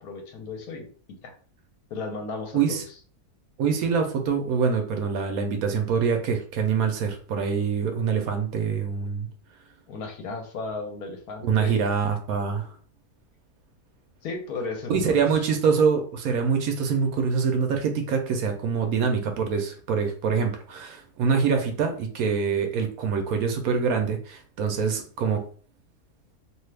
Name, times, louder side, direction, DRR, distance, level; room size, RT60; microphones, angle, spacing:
voice 1, 0.0-0.9 1.2-1.3 1.9-2.8 9.9-11.8 14.2-15.2, left 3 dB, 75° left, 3 dB, 1.2 m, -34 dB
voice 2, 2.5-2.8 3.6-9.3 11.4-12.7 14.9-25.4, right 6 dB, 70° right, 4 dB, 1.0 m, -25 dB
2.8 x 2.3 x 3.2 m, 0.42 s
omnidirectional pair, 1.7 m